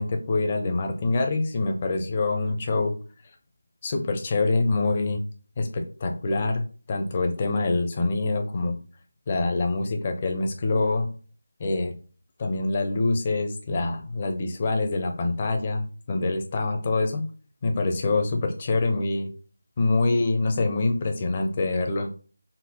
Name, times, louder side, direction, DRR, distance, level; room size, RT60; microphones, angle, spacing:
voice 1, 0.0-2.9 3.8-5.2 5.6-8.8 9.3-11.1 11.6-11.9 12.4-17.2 17.6-19.3 19.8-22.1, left 3 dB, 25° left, 4 dB, 0.6 m, -25 dB
4.2 x 2.0 x 3.6 m, 0.38 s
figure-of-eight pair, 165°, 0 cm